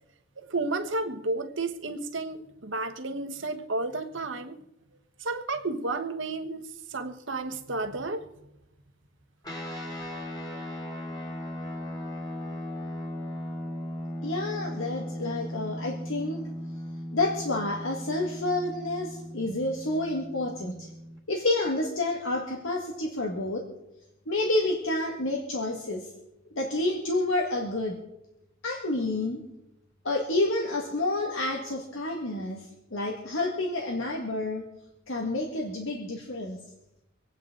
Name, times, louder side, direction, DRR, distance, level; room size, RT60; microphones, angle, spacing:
voice 1, 0.4-4.6 5.2-6.6 6.9-8.3, right 2 dB, 70° right, 1.3 m, -32 dB
sound 1, 9.4-21.2, equal, 20° left, 2.2 m, -37 dB
voice 2, 14.2-16.4 17.1-20.9 21.3-23.6 24.3-26.1 26.5-28.0 28.6-29.4 30.0-34.6 35.1-36.6, left 2 dB, 90° left, 1.9 m, -29 dB
25.5 x 9.2 x 3.9 m
head